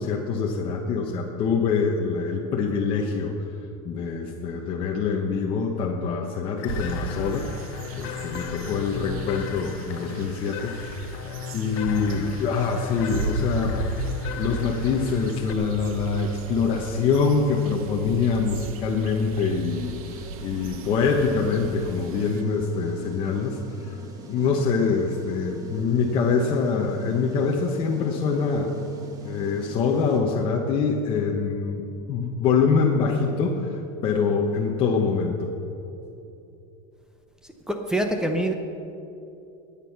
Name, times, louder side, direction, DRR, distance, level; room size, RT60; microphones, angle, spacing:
voice 1, 0.0-3.3 3.8-7.5 7.9-10.7 11.5-13.8 14.4-23.9 24.2-28.7 29.2-31.8 32.1-35.5, left 5 dB, 30° left, 0 dB, 1.0 m, -25 dB
sound 1, 6.6-15.5, left 8 dB, 60° left, 0.9 m, -37 dB
sound 2, 6.7-22.4, right 3 dB, 90° right, 1.4 m, -36 dB
sound 3, 19.7-30.2, right 4 dB, 20° right, 1.3 m, -45 dB
voice 2, 37.7-38.5, right 1 dB, 5° right, 4 dB, 0.7 m, -25 dB
20.5 x 8.5 x 5.9 m, 2.8 s
supercardioid pair, 170°, 18 cm